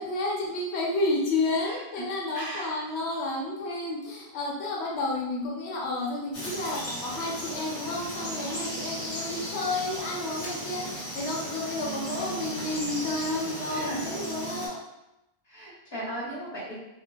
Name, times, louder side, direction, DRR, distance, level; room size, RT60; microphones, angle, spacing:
voice 1, 0.0-14.8, left 2 dB, 80° left, -3 dB, 0.9 m, -31 dB
voice 2, 1.6-2.1 2.3-2.7 13.7-14.0 15.5-16.7, right 1 dB, 25° left, -7 dB, 1.0 m, -37 dB
Frog, 6.3-14.7, right 1 dB, 45° left, 0.8 m, -36 dB
2.3 x 2.2 x 3.2 m, 0.91 s
omnidirectional pair, 1.1 m